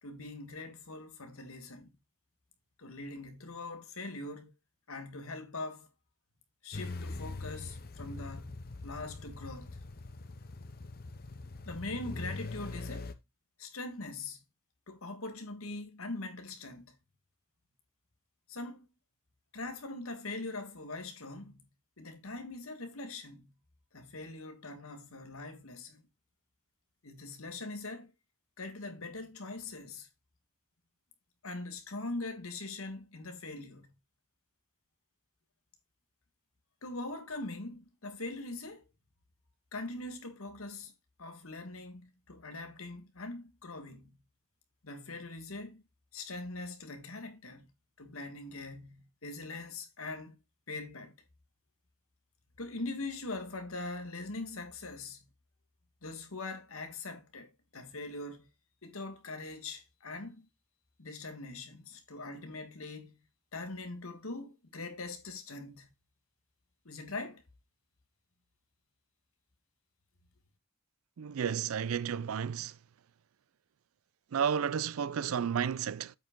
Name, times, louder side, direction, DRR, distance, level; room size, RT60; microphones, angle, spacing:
voice 1, 0.0-1.9 2.8-4.5 4.9-5.9 6.6-9.9 11.6-13.1 13.6-14.4 14.9-16.9 18.5-18.9 19.5-21.7 22.0-23.6 23.9-26.0 27.0-28.1 28.6-30.1 31.4-33.9 36.8-38.8 39.7-40.9 41.2-44.2 44.8-45.8 46.1-47.7 48.0-50.4 50.7-51.1 52.6-55.3 56.0-58.5 58.8-60.5 61.0-63.2 63.5-65.9 66.8-67.4, left 2 dB, 80° left, 1.6 m, -42 dB
sound 1, 6.7-13.1, left 3 dB, 45° left, 0.7 m, -42 dB
voice 2, 71.2-72.7 74.3-76.1, right 7 dB, 80° right, 0.4 m, -32 dB
7.8 x 5.1 x 3.6 m
head